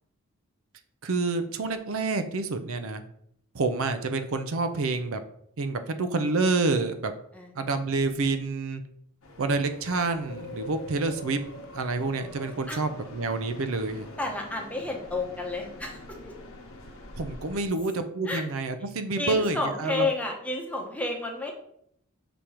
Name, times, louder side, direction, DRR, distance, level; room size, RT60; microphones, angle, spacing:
voice 1, 1.0-3.0 3.5-5.2 5.6-7.1 7.5-8.8 9.4-11.4 11.7-14.1 17.2-20.1, right 3 dB, 70° right, 9 dB, 0.6 m, -28 dB
sound 1, 9.2-17.7, left 1 dB, 70° left, 1.0 m, -44 dB
voice 2, 14.2-16.3 18.3-18.4 19.2-21.5, left 2 dB, 5° left, 0 dB, 0.9 m, -31 dB
6.9 x 3.0 x 4.9 m, 0.70 s
head